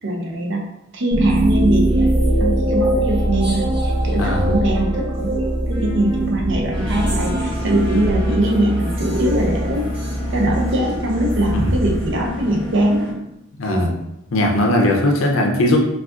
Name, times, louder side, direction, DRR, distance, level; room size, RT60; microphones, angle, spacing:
voice 1, 0.0-0.6 0.9-9.9 10.3-13.3 13.7-13.9, right 1 dB, 60° right, 1 dB, 0.6 m, -22 dB
sound 1, 1.1-12.7, right 1 dB, 25° right, 0.8 m, -22 dB
voice 2, 4.1-4.6 11.5-11.9 13.6-13.9 14.3-15.8, left 1 dB, 65° left, 1 dB, 0.5 m, -19 dB
sound 2, 6.7-13.1, left 2 dB, 5° left, 0.9 m, -31 dB
2.4 x 2.3 x 3.5 m, 0.87 s
head